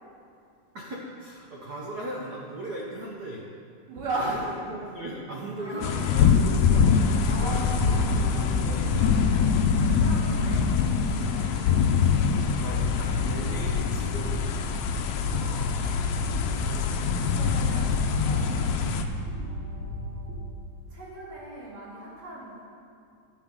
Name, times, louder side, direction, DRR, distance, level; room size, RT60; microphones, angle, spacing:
voice 1, 0.7-3.5 4.2-7.6 8.8-9.1 12.6-14.8 17.3-17.5, right 1 dB, 90° right, -3 dB, 0.8 m, -38 dB
voice 2, 3.9-4.5 5.6-5.9 7.2-11.9 15.1-15.8 16.2-18.9 19.4-20.4 20.9-22.6, right 2 dB, 70° right, -6 dB, 3.6 m, -39 dB
sound 1, 5.8-19.0, left 6 dB, 75° left, 1.7 m, -24 dB
sound 2, 6.1-19.0, left 3 dB, 55° left, 1.2 m, -33 dB
sound 3, 13.0-20.4, left 1 dB, 10° left, 0.5 m, -35 dB
11.5 x 9.9 x 3.7 m, 2.4 s
omnidirectional pair, 3.3 m